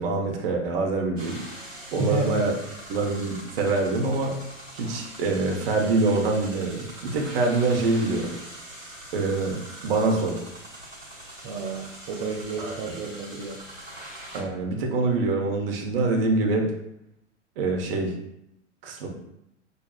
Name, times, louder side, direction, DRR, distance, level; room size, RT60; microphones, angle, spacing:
voice 1, 0.0-1.4 1.9-2.5 2.9-4.3 4.7-8.3 9.1-10.4 12.6-12.9 14.3-16.7 17.6-18.1 18.8-19.1, right 3 dB, 50° right, 1 dB, 1.0 m, -25 dB
sound 1, 1.2-14.4, right 1 dB, 90° right, 1.4 m, -42 dB
voice 2, 2.0-2.4 11.4-13.6, right 3 dB, 30° right, -2 dB, 0.6 m, -31 dB
6.5 x 2.3 x 2.4 m, 0.79 s
figure-of-eight pair, 95°, 37 cm